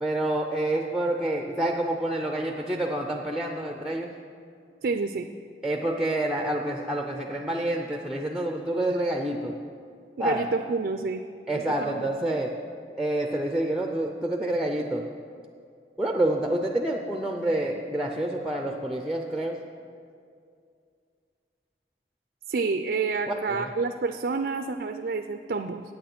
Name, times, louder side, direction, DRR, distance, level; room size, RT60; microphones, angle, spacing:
voice 1, 0.0-4.1 5.6-9.5 10.2-10.4 11.5-12.6 13.0-15.0 16.0-19.6 23.3-23.7, right 1 dB, ahead, 3 dB, 0.4 m, -28 dB
voice 2, 4.8-5.3 10.2-11.2 11.8-12.1 22.5-25.8, right 4 dB, 65° right, 7 dB, 0.4 m, -28 dB
9.3 x 8.7 x 5.9 m, 2.3 s
head